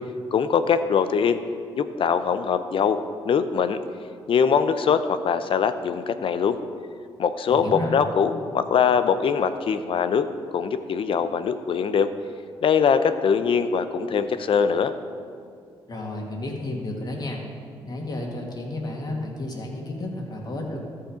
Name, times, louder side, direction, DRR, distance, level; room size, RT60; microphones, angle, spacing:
voice 1, 0.3-1.4 1.8-3.0 3.2-3.8 4.3-6.6 7.2-12.1 12.6-14.9, left 6 dB, 60° left, 11 dB, 0.6 m, -22 dB
voice 2, 7.5-7.9 15.9-17.4 17.8-20.8, left 2 dB, 40° left, 0 dB, 2.0 m, -32 dB
13.5 x 5.7 x 5.1 m, 2.2 s
supercardioid pair, 65°, 10 cm